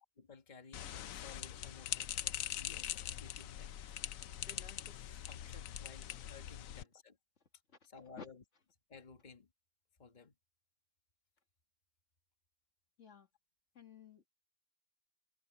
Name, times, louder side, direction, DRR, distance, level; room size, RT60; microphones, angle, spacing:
voice 1, 0.3-7.2 7.8-8.4 8.9-9.5 10.0-10.3, left 4 dB, 35° left, 1.7 m, -57 dB
sound 1, 0.7-6.8, left 11 dB, 90° left, 1.1 m, -42 dB
voice 2, 13.7-14.3, left 6 dB, 65° left, 2.0 m, -52 dB
omnidirectional pair, 1.4 m